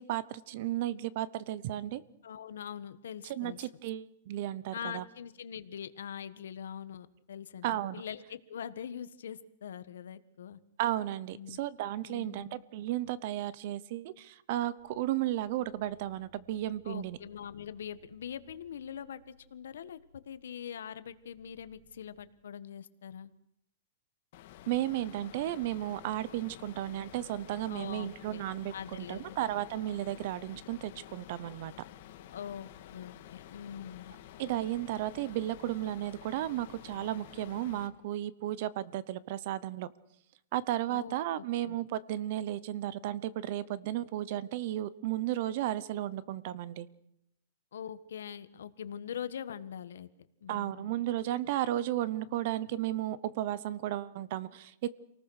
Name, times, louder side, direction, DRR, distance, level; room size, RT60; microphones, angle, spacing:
voice 1, 0.0-2.0 3.2-5.1 7.6-8.0 10.8-17.2 24.7-31.7 34.4-39.9 40.5-46.9 50.5-55.0, right 13 dB, 40° right, 20 dB, 0.8 m, -34 dB
voice 2, 2.2-3.6 4.7-10.6 11.3-11.6 12.1-12.6 16.8-23.3 27.7-28.4 28.7-29.4 32.3-34.1 40.9-41.8 47.7-50.1 50.4-50.9, left 8 dB, 85° left, 13 dB, 1.4 m, -43 dB
sound 1, 14.8-22.3, left 2 dB, 5° right, 5.4 m, -65 dB
sound 2, 24.3-37.9, left 12 dB, 40° left, 1.7 m, -51 dB
27.5 x 19.0 x 6.4 m, 0.78 s
supercardioid pair, 180°, 0 cm